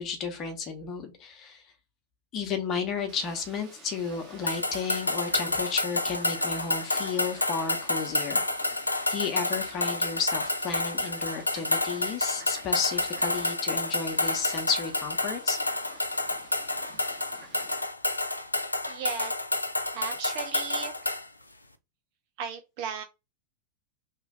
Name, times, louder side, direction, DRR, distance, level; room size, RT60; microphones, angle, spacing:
voice 1, 0.0-1.6 2.3-8.4 9.1-15.6, left 6 dB, 30° left, 5 dB, 0.8 m, -32 dB
Fowl, 3.1-17.8, right 2 dB, 30° right, 1.4 m, -51 dB
sound 1, 4.5-21.3, left 2 dB, 85° left, 0.3 m, -29 dB
voice 2, 18.9-19.3 19.9-21.2 22.4-23.0, right 7 dB, 45° right, 6 dB, 0.5 m, -36 dB
3.0 x 2.5 x 3.6 m, 0.25 s
figure-of-eight pair, 90°, 0 cm